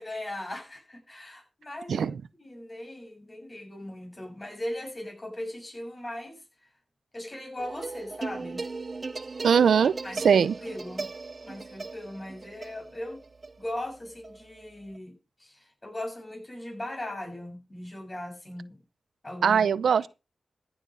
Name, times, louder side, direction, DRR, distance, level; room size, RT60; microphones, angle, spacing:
voice 1, 0.0-2.1 2.4-6.4 7.1-8.6 10.0-11.1 11.4-13.2 13.6-18.8 19.2-19.6, left 1 dB, 30° left, 7.4 m, -39 dB
sound 1, 7.6-15.0, right 3 dB, 50° right, 0.8 m, -38 dB
voice 2, 9.4-9.9 10.2-10.5 19.4-20.1, right 7 dB, 90° right, 0.5 m, -20 dB
15.0 x 7.2 x 5.3 m
cardioid pair, 60°, 0 cm